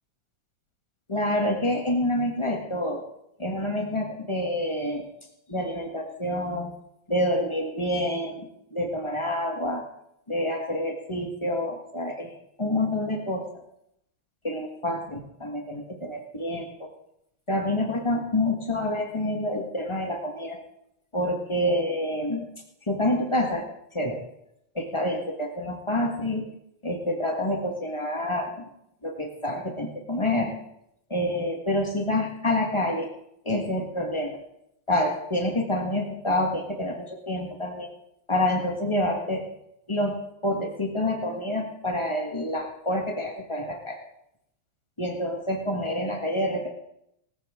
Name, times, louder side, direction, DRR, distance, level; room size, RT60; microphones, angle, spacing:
voice 1, 1.1-3.0 3.4-5.1 5.5-6.7 7.1-9.9 10.3-12.3 12.6-13.5 14.4-16.9 17.5-20.6 21.1-22.5 22.9-23.7 23.9-24.2 24.7-26.4 26.8-28.7 29.0-30.5 31.1-33.1 33.4-34.4 34.9-37.9 38.3-39.5 39.9-44.0 45.0-46.7, left 1 dB, 30° left, 1 dB, 0.5 m, -27 dB
18.0 x 14.5 x 3.7 m, 0.78 s
omnidirectional pair, 3.4 m